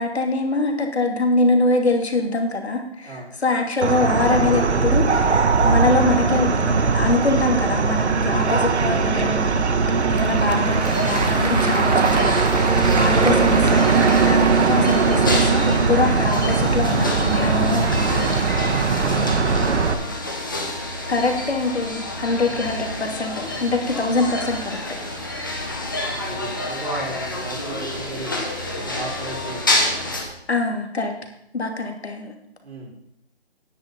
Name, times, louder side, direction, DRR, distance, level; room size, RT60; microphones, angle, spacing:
voice 1, 0.0-9.6 10.1-14.4 14.6-18.1 21.1-24.8 30.5-31.1 31.5-32.3, left 2 dB, 75° left, 4 dB, 2.6 m, -23 dB
sound 1, 3.8-19.9, right 4 dB, 85° right, 1.1 m, -19 dB
Applause / Crowd, 9.7-16.5, right 3 dB, 40° right, 0.6 m, -32 dB
sound 2, 10.8-30.2, left 2 dB, 20° left, 1.0 m, -29 dB
voice 2, 19.0-20.1 22.4-22.6 25.6-29.8 32.6-32.9, right 2 dB, 70° right, 0 dB, 3.8 m, -36 dB
10.0 x 9.3 x 5.3 m, 0.75 s
hypercardioid pair, 180°, 33 cm